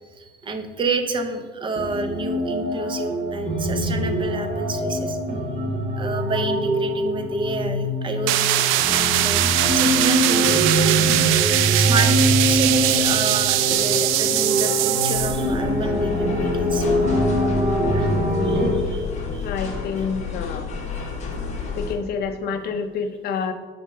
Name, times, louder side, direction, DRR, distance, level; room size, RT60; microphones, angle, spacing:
voice 1, 0.2-5.2 6.0-11.2 11.7-12.1 12.4-17.1 17.8-18.1 18.5-19.1 19.3-19.5, right 3 dB, 25° right, 7 dB, 0.6 m, -29 dB
sound 1, 1.8-18.7, equal, 50° right, 2.3 m, -23 dB
sound 2, 8.3-15.5, right 14 dB, 85° right, 0.4 m, -21 dB
sound 3, 15.1-22.0, left 5 dB, 35° left, 1.0 m, -30 dB
voice 2, 19.4-20.7 21.8-23.5, left 6 dB, 50° left, 8 dB, 0.6 m, -28 dB
7.3 x 4.2 x 5.3 m, 1.5 s
cardioid pair, 170°, 20 cm